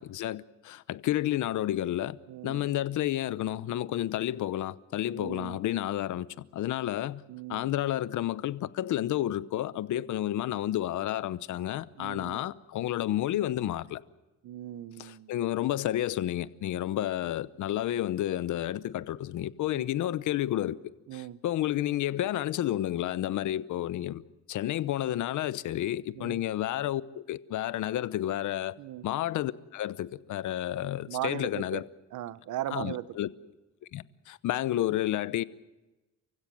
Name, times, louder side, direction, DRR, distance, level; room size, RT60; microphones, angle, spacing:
voice 1, 0.0-2.2 2.4-6.3 6.5-7.2 7.5-14.0 15.0-20.8 21.1-24.2 24.5-28.8 29.0-31.8 32.7-33.3 33.9-35.4, left 13 dB, 75° left, 0.9 m, -31 dB
voice 2, 2.3-2.7 5.1-5.6 7.3-7.7 9.9-10.1 12.0-12.4 14.4-15.4 19.7-19.9 21.1-21.4 26.1-26.4 28.8-29.1 31.1-31.8 32.1-33.2, right 13 dB, 75° right, 0.9 m, -38 dB
30.0 x 16.0 x 7.7 m
cardioid pair, 90°, 30 cm